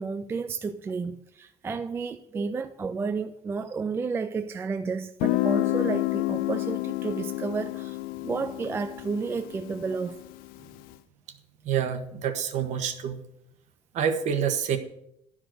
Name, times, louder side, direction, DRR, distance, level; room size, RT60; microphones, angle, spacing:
voice 1, 0.0-10.2, right 4 dB, 15° right, 0.3 m, -32 dB
Guitar, 5.2-10.8, left 18 dB, 85° left, 0.4 m, -29 dB
voice 2, 11.6-13.2 13.9-14.8, right 8 dB, 55° right, 1.1 m, -27 dB
12.0 x 5.0 x 7.7 m
cardioid pair, 160°, 15 cm